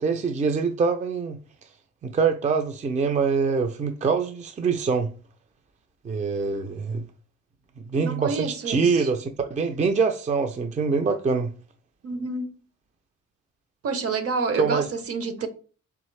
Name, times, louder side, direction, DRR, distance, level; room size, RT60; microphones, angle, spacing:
voice 1, 0.0-1.4 2.0-5.1 6.0-7.0 7.8-11.5 14.6-14.9, right 5 dB, 25° right, 0.5 m, -24 dB
voice 2, 8.0-9.1 12.0-12.5 13.8-15.5, right 4 dB, 50° right, 0.8 m, -28 dB
3.7 x 3.5 x 3.2 m
cardioid pair, 90°, 30 cm